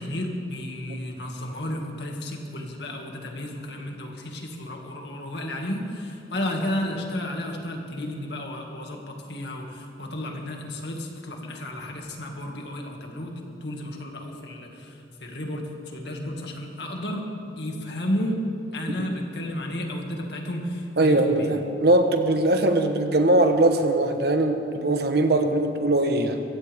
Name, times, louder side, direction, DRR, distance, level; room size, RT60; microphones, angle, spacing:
voice 1, 0.0-17.2 17.6-18.4 18.7-21.5, left 1 dB, 65° left, 1 dB, 2.2 m, -32 dB
voice 2, 21.0-26.4, right 2 dB, 60° right, 6 dB, 1.2 m, -21 dB
23.5 x 16.0 x 3.6 m, 2.6 s
head